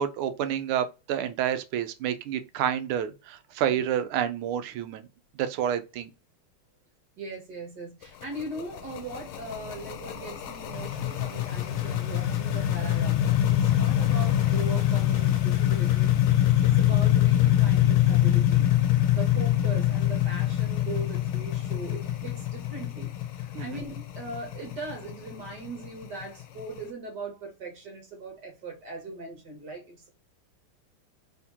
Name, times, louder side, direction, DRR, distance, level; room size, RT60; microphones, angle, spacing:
voice 1, 0.0-5.1 5.4-6.1 23.5-23.8, right 9 dB, 80° right, 1.5 m, -29 dB
voice 2, 7.2-18.7 19.1-30.1, right 2 dB, 55° right, 1.6 m, -40 dB
sound 1, 8.0-26.8, left 12 dB, 75° left, 1.5 m, -24 dB
4.2 x 3.7 x 2.8 m
omnidirectional pair, 2.4 m